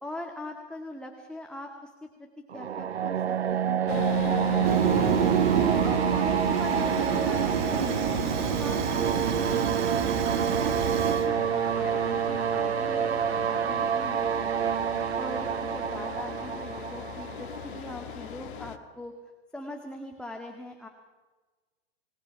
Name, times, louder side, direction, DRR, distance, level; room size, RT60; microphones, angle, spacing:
voice 1, 0.0-1.9 2.2-2.3 2.5-5.1 5.5-10.0 10.5-14.7 15.2-19.1 19.5-20.9, left 1 dB, 5° left, 2 dB, 1.8 m, -41 dB
sound 1, 2.5-18.3, right 9 dB, 85° right, 0.6 m, -28 dB
sound 2, 3.9-18.8, left 11 dB, 55° left, 1.6 m, -37 dB
Fire, 4.6-11.3, right 9 dB, 50° right, 2.0 m, -28 dB
27.0 x 19.0 x 5.8 m, 1.3 s
figure-of-eight pair, 110°, 32 cm